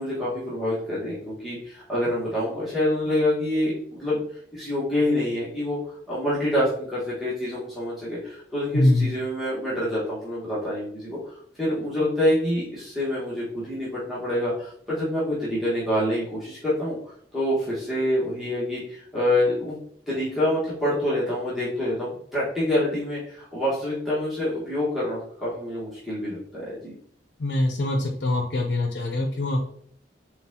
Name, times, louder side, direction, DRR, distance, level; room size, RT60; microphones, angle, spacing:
voice 1, 0.0-4.2 4.5-5.8 6.1-11.3 11.6-17.0 17.3-19.8 20.1-26.9, left 1 dB, ahead, -10 dB, 1.3 m, -26 dB
voice 2, 8.7-9.1 27.4-29.6, left 1 dB, 65° left, 3 dB, 0.6 m, -23 dB
4.3 x 3.7 x 2.7 m, 0.62 s
head